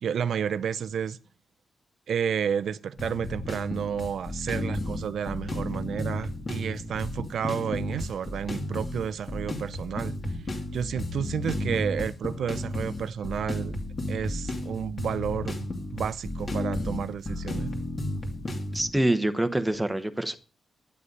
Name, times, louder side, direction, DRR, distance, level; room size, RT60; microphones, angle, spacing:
voice 1, 0.0-1.2 2.1-10.1 10.5-13.8 14.1-15.6 15.9-17.7, right 8 dB, 75° right, 0.5 m, -31 dB
sound 1, 3.0-18.9, left 1 dB, 30° left, 2.5 m, -33 dB
voice 2, 18.7-20.4, right 1 dB, 5° right, 1.0 m, -25 dB
11.5 x 9.6 x 5.4 m
wide cardioid pair, 160°, 0 cm